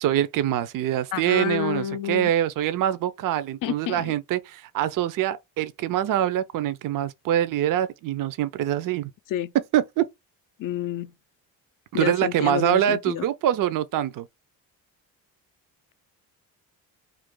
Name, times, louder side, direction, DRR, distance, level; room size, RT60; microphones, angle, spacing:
voice 1, 0.0-9.1 9.7-10.1 11.9-14.3, right 11 dB, 50° right, 0.5 m, -24 dB
voice 2, 1.1-2.3 3.6-4.2 9.3-9.5 10.6-11.1 11.9-13.2, left 12 dB, 50° left, 0.5 m, -29 dB
2.5 x 2.4 x 3.6 m
supercardioid pair, 55°, 44 cm